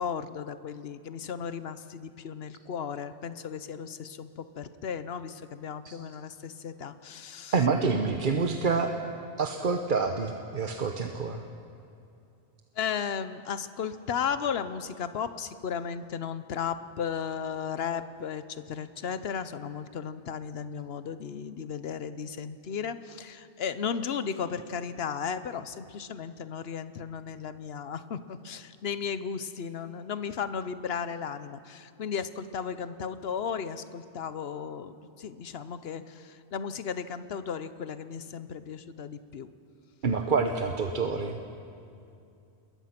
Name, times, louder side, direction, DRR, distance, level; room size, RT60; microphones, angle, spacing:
voice 1, 0.0-7.6 12.7-39.5, left 7 dB, 65° left, 12 dB, 1.1 m, -35 dB
voice 2, 7.5-8.9 9.4-11.4 40.0-41.4, right 4 dB, 50° right, 5 dB, 1.1 m, -27 dB
27.5 x 21.0 x 5.9 m, 2.6 s
omnidirectional pair, 1.1 m